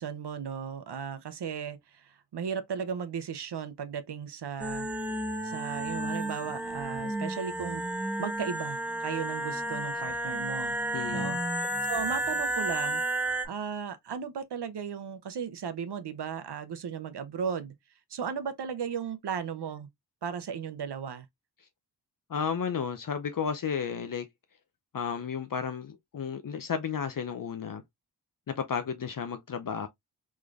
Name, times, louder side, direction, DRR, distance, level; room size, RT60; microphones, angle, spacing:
voice 1, 0.0-4.9 5.4-7.8 8.2-10.8 11.1-11.4 11.9-17.7 18.1-19.9 20.2-21.3, right 7 dB, 75° right, 0.7 m, -36 dB
sound 1, 4.6-13.5, right 1 dB, 5° right, 0.6 m, -32 dB
voice 2, 10.9-11.4 22.3-24.3 24.9-27.8 28.5-29.9, left 6 dB, 55° left, 0.6 m, -33 dB
3.7 x 3.1 x 2.4 m
cardioid pair, 55°, 41 cm